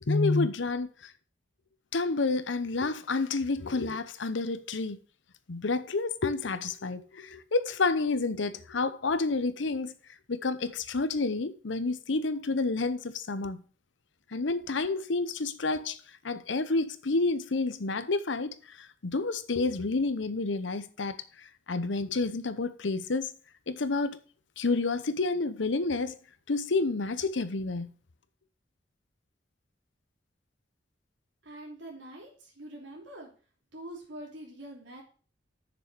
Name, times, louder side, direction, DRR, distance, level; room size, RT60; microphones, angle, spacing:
voice 1, 0.0-1.1 1.9-5.0 5.5-9.9 10.3-13.6 14.3-16.0 16.2-23.3 23.7-24.2 24.6-26.2 26.5-27.9, left 3 dB, 75° left, 0.8 m, -29 dB
voice 2, 31.4-33.3 33.7-35.0, right 1 dB, 75° right, 3.0 m, -44 dB
6.9 x 6.4 x 6.7 m
head